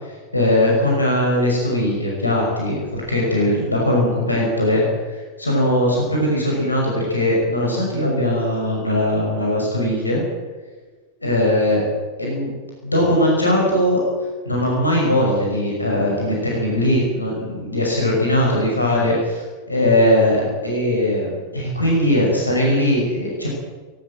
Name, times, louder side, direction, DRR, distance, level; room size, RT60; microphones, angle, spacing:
voice 1, 0.0-10.2 11.2-11.9 12.2-12.5 12.8-14.0 14.5-23.5, left 1 dB, 80° left, -2 dB, 5.8 m, -20 dB
18.5 x 18.0 x 7.8 m, 1.4 s
figure-of-eight pair, 90°, 0 cm